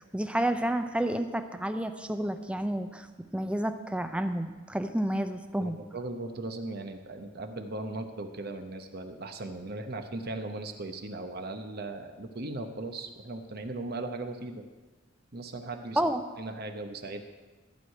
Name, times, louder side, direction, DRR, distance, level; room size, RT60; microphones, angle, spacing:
voice 1, 0.0-5.8 16.0-16.2, right 1 dB, 5° right, 8 dB, 0.6 m, -30 dB
voice 2, 5.6-14.6 15.3-16.0 16.4-17.3, right 2 dB, 55° right, 6 dB, 1.0 m, -38 dB
14.5 x 4.8 x 9.1 m, 1.3 s
head